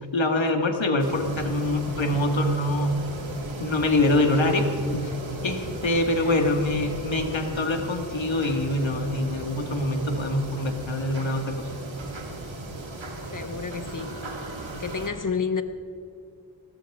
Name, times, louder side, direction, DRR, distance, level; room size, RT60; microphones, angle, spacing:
voice 1, 0.1-3.0 3.6-5.1 5.4-11.7, left 1 dB, 80° left, 4 dB, 1.9 m, -24 dB
sound 1, 1.0-15.1, right 2 dB, 90° right, 2.2 m, -36 dB
voice 2, 6.2-6.6 13.3-14.2 14.8-15.6, left 5 dB, 45° left, 9 dB, 1.1 m, -30 dB
20.5 x 17.0 x 3.6 m, 2.5 s
wide cardioid pair, 65°, 45 cm